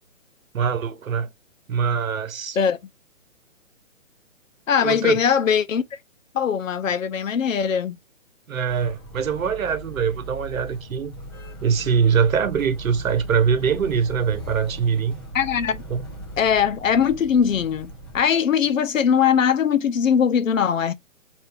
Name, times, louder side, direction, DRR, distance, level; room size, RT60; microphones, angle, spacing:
voice 1, 0.5-1.3 1.7-2.6 4.8-5.2 8.5-11.1 11.6-15.2 15.9-16.1, right 6 dB, 85° right, 1.0 m, -23 dB
voice 2, 4.7-5.8 6.3-8.0 15.3-15.8 16.4-20.9, left 7 dB, 75° left, 0.7 m, -21 dB
Motor vehicle (road), 8.7-18.2, right 1 dB, 20° left, 0.6 m, -38 dB
4.4 x 2.6 x 3.5 m
hypercardioid pair, 175°, 40 cm